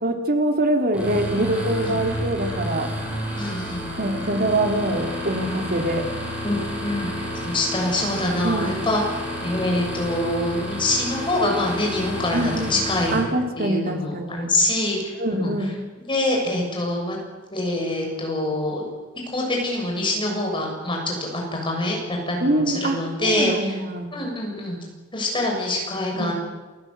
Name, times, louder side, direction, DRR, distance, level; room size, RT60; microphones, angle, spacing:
voice 1, 0.0-2.9 4.0-6.1 8.4-8.8 12.3-12.8 13.1-14.5 15.2-15.7 22.4-24.1 26.1-26.3, right 1 dB, 50° right, 4 dB, 3.2 m, -24 dB
sound 1, 0.9-13.2, equal, 5° right, 7.6 m, -30 dB
voice 2, 3.4-3.8 6.4-9.0 9.4-13.2 13.6-15.1 15.4-15.5 16.1-17.2 17.5-18.8 19.3-23.5 24.1-24.8 25.1-26.3, left 1 dB, 25° left, 0 dB, 7.1 m, -25 dB
28.0 x 15.5 x 8.2 m, 1.3 s
head